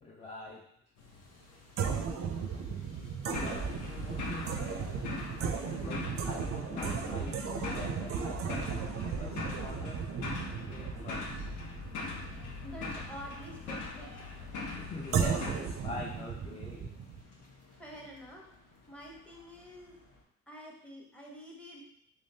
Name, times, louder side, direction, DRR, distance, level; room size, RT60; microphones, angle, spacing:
voice 1, 0.0-0.7 1.8-2.2 3.3-4.6 5.7-10.1 10.7-11.4 14.7-17.0, left 2 dB, 20° left, -2 dB, 0.5 m, -45 dB
sound 1, 1.0-20.2, left 2 dB, 55° left, 0.9 m, -57 dB
sound 2, 1.8-13.5 15.1-17.2, right 6 dB, 50° right, 0.5 m, -36 dB
sound 3, 3.3-15.5, left 3 dB, 80° left, 0.7 m, -41 dB
voice 2, 12.6-14.1 17.7-18.5 18.9-20.0 20.5-21.8, equal, 5° left, -2 dB, 0.9 m, -48 dB
3.4 x 3.3 x 2.7 m, 0.73 s
cardioid pair, 90°, 30 cm